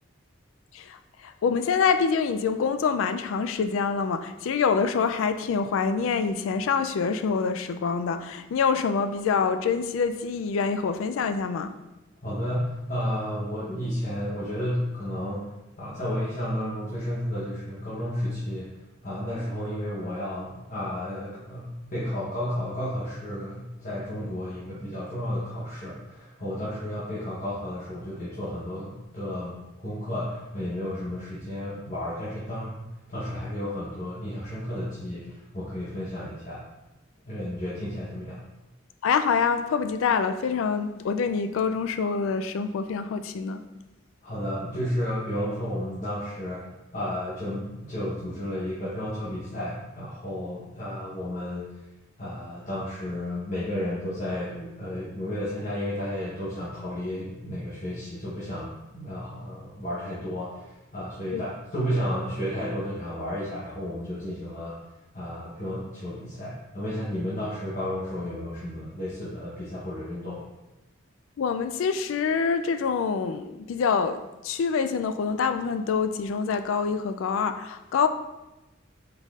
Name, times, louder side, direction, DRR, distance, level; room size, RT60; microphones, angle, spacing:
voice 1, 0.7-11.7 39.0-43.6 61.3-61.4 71.4-78.1, left 5 dB, 80° left, 0.3 m, -26 dB
voice 2, 12.2-18.7 19.0-29.6 29.8-32.8 33.1-36.6 37.2-38.4 44.2-46.7 46.9-51.9 52.2-64.7 65.1-70.4, equal, 40° left, 0.9 m, -32 dB
5.4 x 4.0 x 2.4 m
head